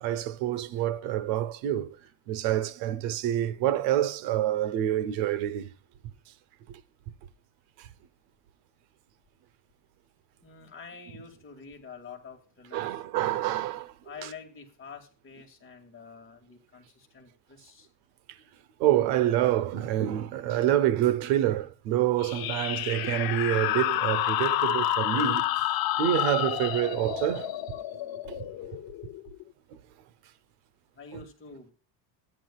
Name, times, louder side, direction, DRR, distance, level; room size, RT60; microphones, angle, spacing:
voice 1, 0.0-1.9 2.3-5.7 12.7-13.9 18.8-25.4 26.0-27.5 28.3-28.4, right 12 dB, 90° right, 0.9 m, -27 dB
voice 2, 10.4-13.0 14.0-17.9 30.9-31.7, left 5 dB, 25° left, 2.2 m, -47 dB
sound 1, 22.2-29.4, left 13 dB, 45° left, 0.7 m, -29 dB
14.0 x 9.9 x 2.4 m
cardioid pair, 140°, 50 cm